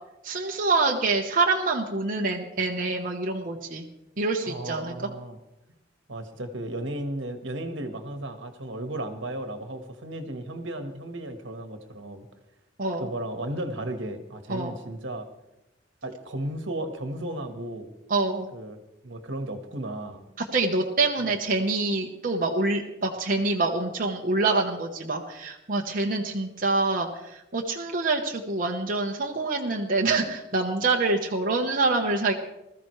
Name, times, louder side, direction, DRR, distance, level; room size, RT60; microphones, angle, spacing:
voice 1, 0.2-3.9 4.2-4.9 12.8-13.1 14.5-14.8 18.1-18.5 20.4-32.3, right 3 dB, 45° right, 0 dB, 1.1 m, -26 dB
voice 2, 4.4-5.4 6.1-12.3 13.0-15.3 16.0-17.9 18.5-18.8 19.0-20.2, right 1 dB, 70° right, 7 dB, 1.6 m, -34 dB
20.5 x 14.0 x 3.3 m, 0.92 s
head